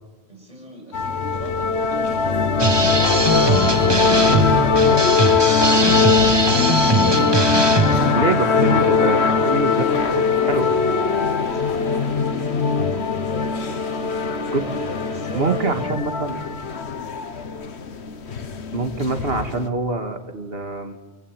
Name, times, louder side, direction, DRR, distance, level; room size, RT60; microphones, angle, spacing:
voice 1, 0.3-6.0 8.7-9.2 11.1-12.7 13.3-13.7 14.5-15.8, equal, 40° right, 0 dB, 7.5 m, -41 dB
sound 1, 0.9-19.7, left 5 dB, 85° left, 1.5 m, -20 dB
sound 2, 2.6-8.1, right 2 dB, 25° right, 1.4 m, -21 dB
sound 3, 3.6-15.9, right 1 dB, 30° left, 2.9 m, -42 dB
voice 2, 8.1-10.8 14.5-14.6 15.3-16.4 18.7-21.0, right 3 dB, 65° right, 7 dB, 2.3 m, -25 dB
28.0 x 23.5 x 9.1 m, 1.3 s
omnidirectional pair, 1.1 m